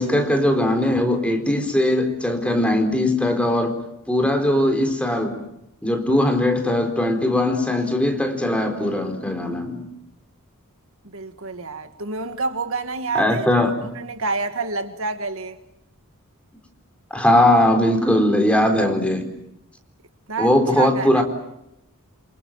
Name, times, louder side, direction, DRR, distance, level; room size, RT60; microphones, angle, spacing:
voice 1, 0.0-3.8 4.1-5.4 5.8-9.9 13.1-13.7 17.1-19.3 20.4-21.2, left 1 dB, 5° left, 4.1 m, -20 dB
voice 2, 11.0-15.6 20.3-21.2, right 4 dB, 65° right, 1.8 m, -28 dB
28.0 x 27.0 x 7.4 m
head